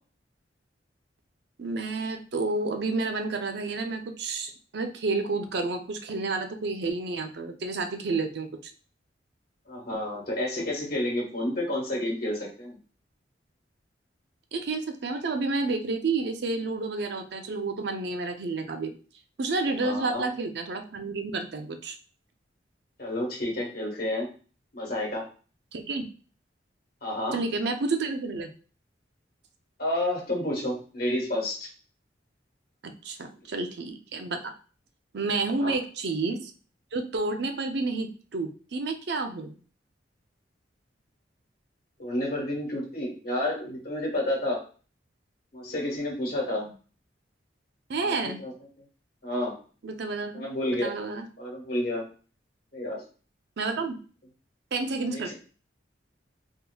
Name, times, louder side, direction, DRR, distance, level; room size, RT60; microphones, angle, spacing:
voice 1, 1.6-8.5 14.5-18.9 19.4-22.0 25.7-26.1 27.3-28.5 33.0-34.5 35.1-36.5 36.9-39.5 46.6-46.7 47.9-48.4 49.8-51.3 53.6-54.0 54.7-55.3, right 3 dB, 60° right, 6 dB, 0.5 m, -30 dB
voice 2, 9.7-12.8 19.8-20.2 23.0-24.3 24.7-25.3 27.0-27.4 29.8-31.7 35.6-35.8 42.0-44.6 45.5-46.7 48.0-48.5 49.2-49.5 50.3-50.9 51.4-52.0 52.7-53.0 55.1-55.3, left 1 dB, 55° left, -2 dB, 1.4 m, -30 dB
3.6 x 2.8 x 2.2 m, 0.38 s
head